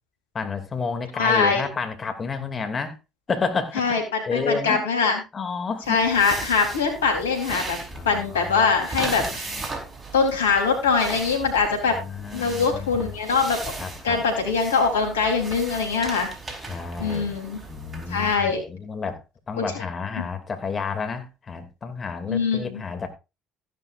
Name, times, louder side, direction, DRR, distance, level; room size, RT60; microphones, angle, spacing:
voice 1, 0.3-3.0 3.3-3.8 4.3-4.8 5.3-6.0 7.9-8.6 9.0-9.3 11.9-13.1 13.8-14.2 16.7-17.3 17.7-19.2 19.5-23.1, left 5 dB, 35° left, 2.8 m, -30 dB
voice 2, 1.1-1.6 3.8-5.2 5.9-7.8 8.0-9.7 10.1-12.0 12.3-13.7 14.0-16.3 17.0-17.6 18.1-18.6 19.6-19.8 20.2-20.3 22.3-22.8, left 5 dB, 90° left, 3.9 m, -23 dB
sound 1, 5.8-18.4, right 3 dB, 30° right, 4.6 m, -37 dB
15.0 x 11.5 x 2.6 m
hypercardioid pair, 65°, 0 cm